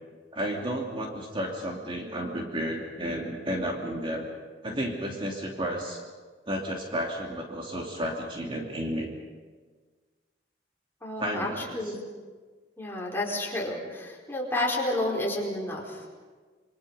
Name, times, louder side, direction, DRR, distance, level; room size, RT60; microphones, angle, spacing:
voice 1, 0.3-4.3 4.6-6.0 6.5-9.1 11.2-11.8, equal, 30° right, 0 dB, 2.7 m, -32 dB
voice 2, 11.0-12.0 12.8-16.0, left 1 dB, 15° left, -2 dB, 4.6 m, -30 dB
27.5 x 24.5 x 5.4 m, 1.4 s
head